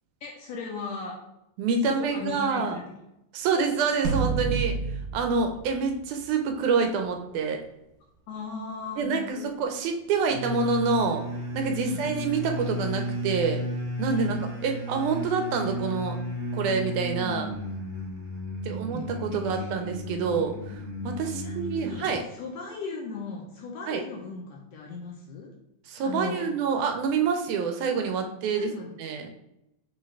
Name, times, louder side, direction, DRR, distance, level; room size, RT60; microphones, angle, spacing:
voice 1, 0.2-1.1 1.8-2.8 8.3-9.5 11.8-12.1 14.1-14.4 18.6-19.1 19.3-19.7 21.2-22.1 22.3-25.5 26.0-26.5 28.6-28.9, left 4 dB, 75° left, -1 dB, 1.6 m, -38 dB
voice 2, 1.6-2.8 3.3-4.8 5.1-7.6 9.0-11.2 11.5-13.6 14.0-14.4 14.6-16.2 16.5-17.5 18.6-20.8 21.0-22.2 23.9-24.0 25.9-28.7 29.0-29.3, right 5 dB, 90° right, 4 dB, 2.1 m, -27 dB
sound 1, 4.0-6.6, right 5 dB, 75° right, 2.1 m, -30 dB
sound 2, 10.3-22.2, equal, 45° right, 0.6 m, -33 dB
6.0 x 2.4 x 3.2 m, 0.84 s
omnidirectional pair, 3.5 m